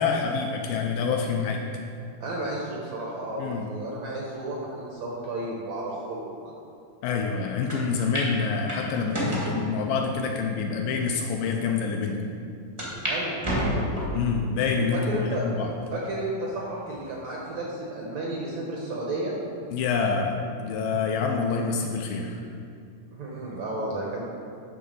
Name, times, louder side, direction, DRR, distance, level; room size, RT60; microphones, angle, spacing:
voice 1, 0.0-1.6 3.4-3.6 7.0-12.2 14.1-15.7 19.7-22.4, left 5 dB, 80° left, 2 dB, 2.1 m, -27 dB
voice 2, 2.2-6.2 13.1-13.4 14.9-15.5 15.9-19.3 23.1-24.3, right 1 dB, 70° right, -3 dB, 1.7 m, -32 dB
sound 1, 7.7-7.8 8.1-8.3 8.7-9.5 10.2-10.3 11.0-11.1 11.4-11.5 12.8-13.2 13.4-14.2 14.7-15.2 15.7-15.8 17.0-17.4, equal, 35° right, 0.4 m, -29 dB
10.0 x 3.7 x 6.5 m, 2.4 s
omnidirectional pair, 4.2 m